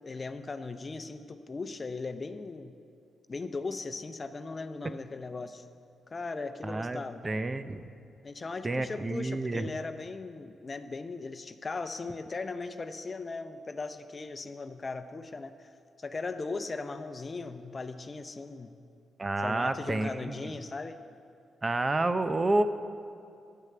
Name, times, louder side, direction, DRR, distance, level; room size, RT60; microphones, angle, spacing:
voice 1, 0.0-2.8 3.3-5.7 6.1-7.2 8.2-15.7 16.0-18.8 19.4-21.0, left 3 dB, 40° left, 10 dB, 0.6 m, -38 dB
voice 2, 6.6-7.8 8.6-9.7 19.2-20.5 21.6-22.6, right 2 dB, 30° right, 11 dB, 0.6 m, -29 dB
10.0 x 6.4 x 7.5 m, 2.5 s
supercardioid pair, 50°, 0 cm